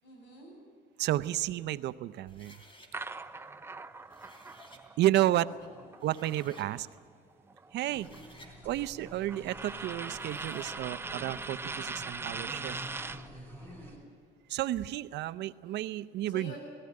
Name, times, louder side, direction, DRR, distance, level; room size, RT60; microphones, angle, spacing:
voice 1, 0.0-0.6 5.2-5.4 7.9-8.3 13.6-14.1 16.3-16.6, left 1 dB, 80° left, 0 dB, 8.0 m, -49 dB
voice 2, 1.0-2.6 5.0-5.5 6.0-6.9 7.7-8.1 8.6-12.8 14.5-16.5, right 14 dB, 70° right, 14 dB, 0.6 m, -31 dB
sound 1, 2.3-2.9 3.9-4.8 5.6-5.7 6.0-6.7 7.8-8.5 10.0-10.8, left 1 dB, 30° left, 3.6 m, -55 dB
sound 2, 2.9-7.0 7.3-13.3, right 3 dB, 15° right, 0.6 m, -41 dB
sound 3, 7.9-14.0, right 1 dB, 10° left, 4.4 m, -49 dB
18.5 x 17.0 x 9.7 m, 2.3 s
cardioid pair, 135°, 18 cm